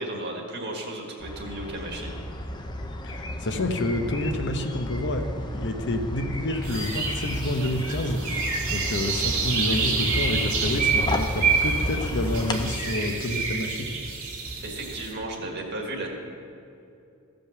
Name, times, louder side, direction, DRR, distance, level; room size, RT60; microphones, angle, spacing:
voice 1, 0.0-2.1 14.6-16.1, right 1 dB, 55° right, 0 dB, 1.8 m, -34 dB
sound 1, 1.2-12.7, left 1 dB, 20° left, 0.6 m, -33 dB
voice 2, 3.0-5.2 5.5-8.4 8.7-13.9, left 1 dB, 55° left, 6 dB, 0.8 m, -28 dB
sound 2, 6.6-15.1, right 5 dB, 85° right, 2.3 m, -28 dB
15.0 x 5.3 x 6.7 m, 2.6 s
head